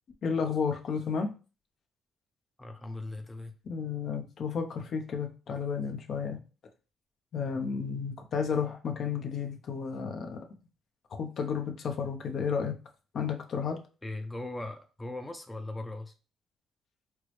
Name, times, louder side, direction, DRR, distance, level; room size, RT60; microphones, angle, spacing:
voice 1, 0.2-1.3 3.6-6.4 7.3-10.4 11.1-12.8 13.1-13.8, left 6 dB, 60° left, 5 dB, 0.6 m, -32 dB
voice 2, 2.6-3.5 14.0-16.1, left 2 dB, 15° left, 6 dB, 0.4 m, -39 dB
4.5 x 2.0 x 3.1 m, 0.35 s
cardioid pair, 90°, 0 cm